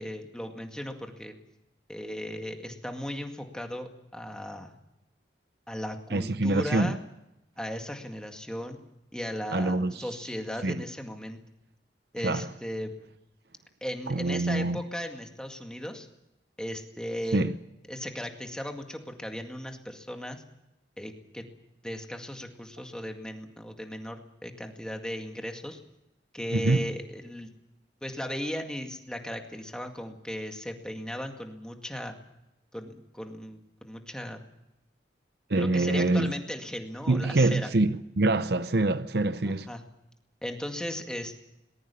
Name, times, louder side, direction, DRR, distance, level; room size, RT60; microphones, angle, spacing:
voice 1, 0.0-1.4 1.9-4.8 5.7-7.0 7.6-8.8 9.1-11.4 12.1-12.9 13.8-16.1 16.6-17.4 17.9-20.4 21.0-21.4 21.8-25.8 26.3-27.5 28.0-32.2 32.7-34.5 35.6-37.7 39.4-39.8 40.4-41.5, equal, 5° left, 2.0 m, -37 dB
voice 2, 6.1-7.0 9.5-9.9 10.6-10.8 12.2-12.5 14.1-14.8 17.3-17.5 26.5-26.9 35.5-36.3 37.1-39.7, right 2 dB, 60° right, 0.8 m, -25 dB
22.0 x 19.5 x 7.0 m
head